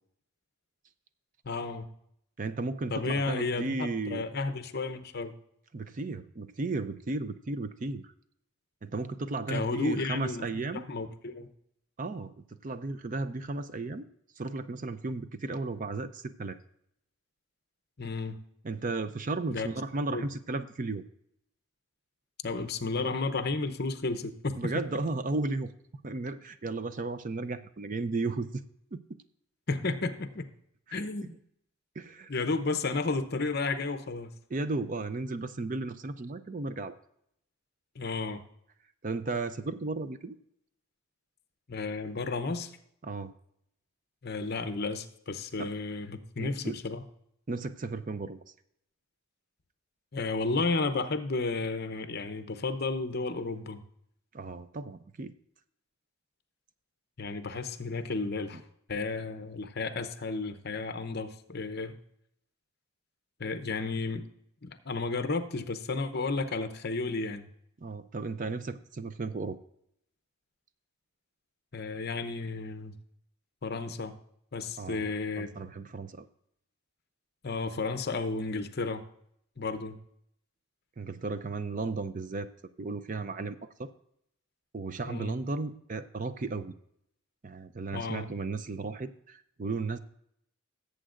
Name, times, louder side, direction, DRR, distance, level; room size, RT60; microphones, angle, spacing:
voice 1, 1.4-1.9 2.9-3.8 4.1-5.3 9.5-11.5 18.0-18.4 19.5-19.7 20.1-20.3 22.4-24.6 29.7-30.5 30.9-31.3 32.3-34.3 38.0-38.4 41.7-42.7 44.2-47.0 50.1-53.8 57.2-58.6 58.9-61.9 63.4-64.3 64.6-67.5 71.7-72.9 73.6-74.2 74.5-75.7 77.4-79.0 79.6-80.0 85.1-85.4 87.9-88.3, left 3 dB, 45° left, 9 dB, 0.7 m, -32 dB
voice 2, 2.4-4.2 5.7-8.1 8.8-10.8 12.0-12.3 12.6-14.1 14.4-16.6 18.6-21.0 24.6-25.7 26.0-28.6 28.9-29.0 30.9-31.4 32.0-32.3 34.5-36.9 39.0-40.4 43.0-43.3 45.6-45.7 46.4-46.8 47.5-48.4 54.3-55.3 58.5-58.6 67.8-69.6 74.8-75.1 75.4-76.3 81.0-82.5 82.8-83.9 84.7-86.7 87.4-90.0, right 3 dB, 35° right, 12 dB, 0.4 m, -34 dB
17.5 x 7.9 x 2.5 m, 0.73 s
head